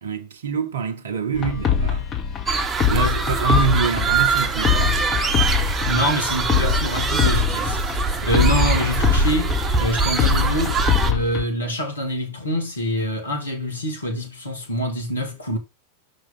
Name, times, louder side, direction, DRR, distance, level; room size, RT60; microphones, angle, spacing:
voice 1, 0.0-2.1 2.9-5.2, right 7 dB, 60° right, 0.8 m, -26 dB
sound 1, 1.3-11.4, left 7 dB, 25° left, 1.9 m, -23 dB
sound 2, 2.5-11.1, right 4 dB, 20° right, 1.1 m, -23 dB
voice 2, 2.9-3.2 5.9-15.6, equal, 75° left, 2.7 m, -26 dB
6.1 x 5.1 x 5.5 m
figure-of-eight pair, 90°, 0 cm